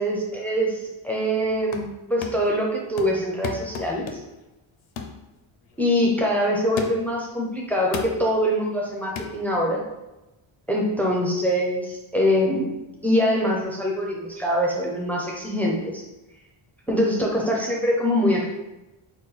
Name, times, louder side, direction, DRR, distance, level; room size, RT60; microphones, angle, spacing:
voice 1, 0.0-4.1 5.8-9.8 10.7-12.7 13.0-16.0 16.9-18.5, equal, 5° left, -2 dB, 0.4 m, -23 dB
sound 1, 1.4-1.9 2.2-2.6 3.0-4.4 5.0-5.2 5.7-5.8 6.8-7.2 7.9-8.2 9.2-9.4, left 5 dB, 70° left, 0.6 m, -34 dB
4.0 x 2.2 x 3.9 m, 1.0 s
wide cardioid pair, 165°, 50 cm